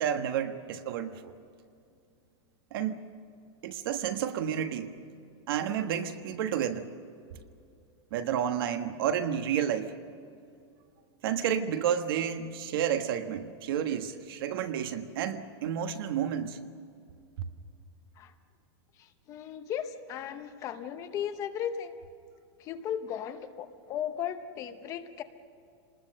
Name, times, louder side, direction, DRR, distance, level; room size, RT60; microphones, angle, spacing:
voice 1, 0.0-1.3 2.7-3.0 3.6-5.0 5.5-6.9 8.1-9.9 11.2-16.6, right 9 dB, 55° right, 8 dB, 1.4 m, -31 dB
voice 2, 19.0-21.9 22.6-25.2, left 9 dB, 25° left, 9 dB, 0.8 m, -36 dB
26.0 x 20.0 x 6.6 m, 2.5 s
supercardioid pair, 175°, 14 cm